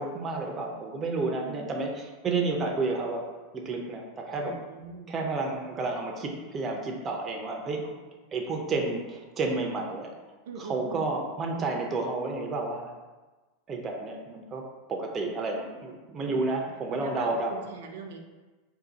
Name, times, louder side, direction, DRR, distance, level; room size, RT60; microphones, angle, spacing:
voice 1, 0.0-3.2 3.5-4.6 5.1-7.8 8.3-10.1 10.6-12.9 13.7-14.6 14.9-17.6, right 3 dB, 20° right, 1 dB, 0.5 m, -31 dB
voice 2, 4.4-5.1 7.8-7.9 8.2-8.3 10.5-11.1 16.2-16.4 16.9-18.2, right 5 dB, 80° right, 3 dB, 0.4 m, -42 dB
2.6 x 2.6 x 3.8 m, 1.2 s
supercardioid pair, 145°, 0 cm